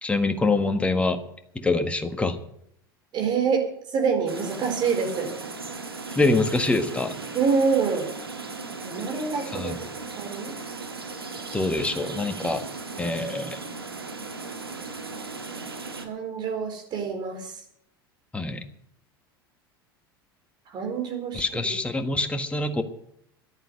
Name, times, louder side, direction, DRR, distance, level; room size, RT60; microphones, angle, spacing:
voice 1, 0.0-1.2 1.5-2.4 6.1-7.2 9.5-9.8 11.5-12.6 13.0-13.6 18.3-18.6 21.3-22.8, left 2 dB, 10° left, 7 dB, 1.5 m, -25 dB
voice 2, 3.1-3.6 3.9-5.3 7.3-8.1 8.8-9.8 10.2-10.5 16.0-17.6 20.7-21.4, right 5 dB, 40° right, 3 dB, 4.5 m, -26 dB
sound 1, 4.3-16.1, right 4 dB, 85° right, 1.6 m, -37 dB
14.0 x 11.0 x 6.6 m, 0.72 s
figure-of-eight pair, 80°, 12 cm